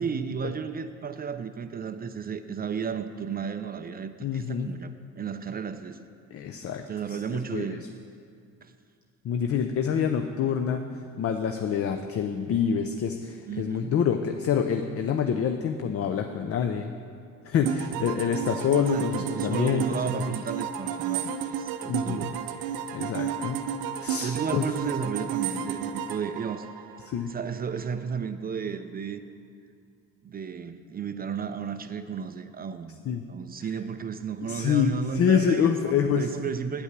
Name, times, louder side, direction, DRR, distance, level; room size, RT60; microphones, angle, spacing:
voice 1, 0.0-6.0 6.9-7.8 8.6-8.7 13.5-13.9 18.9-22.3 22.8-23.0 24.0-26.9 27.3-29.2 30.2-33.0 33.3-36.8, right 6 dB, 25° right, 10 dB, 0.4 m, -33 dB
voice 2, 4.2-4.7 6.3-6.8 7.1-7.7 9.2-10.8 11.2-16.9 17.4-19.8 20.1-20.2 21.9-22.3 22.9-23.6 24.0-24.6 27.0-27.3 33.1-33.2 34.5-36.3, left 7 dB, 40° left, 6 dB, 0.5 m, -26 dB
sound 1, 17.7-27.4, right 9 dB, 75° right, 0.5 m, -32 dB
8.4 x 5.4 x 6.0 m, 2.3 s
supercardioid pair, 70°, 36 cm